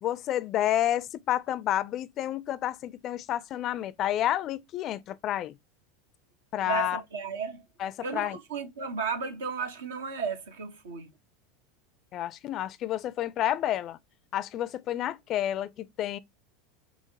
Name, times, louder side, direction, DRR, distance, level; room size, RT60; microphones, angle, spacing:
voice 1, 0.0-5.6 6.5-7.0 7.8-8.4 12.1-14.0 14.3-16.2, left 12 dB, 45° left, 0.4 m, -30 dB
voice 2, 6.7-7.6 8.0-11.1, right 5 dB, 75° right, 0.9 m, -34 dB
5.8 x 2.0 x 2.7 m
hypercardioid pair, 80°, 0 cm